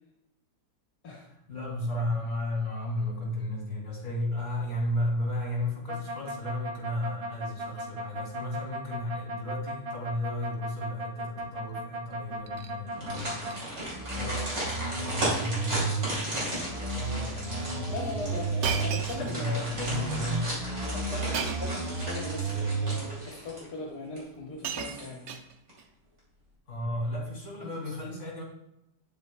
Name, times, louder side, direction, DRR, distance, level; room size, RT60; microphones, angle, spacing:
voice 1, 1.3-13.6 14.1-18.4 18.9-20.5 26.7-28.4, left 1 dB, 40° left, -1 dB, 3.2 m, -34 dB
sound 1, 5.9-13.5 13.9-16.1 16.5-19.1 19.6-23.0, right 3 dB, 35° right, 0.6 m, -34 dB
Shatter, 12.3-12.7 13.1-13.6 13.9-14.1 14.4-14.5 15.4-15.6 15.9-16.2 17.0-17.1 18.6-19.7 21.3-21.8 22.8-22.9 24.0-24.1 24.3-25.9 26.8-27.1, right 6 dB, 80° right, 0.6 m, -36 dB
sound 2, 12.9-23.8 24.2-24.3 24.7-25.3 25.7-25.8, right 1 dB, 55° right, 3.4 m, -36 dB
voice 2, 17.9-19.7 20.8-25.2 27.6-27.9, left 3 dB, 70° left, -2 dB, 1.7 m, -39 dB
9.1 x 7.8 x 2.3 m, 0.82 s
omnidirectional pair, 1.8 m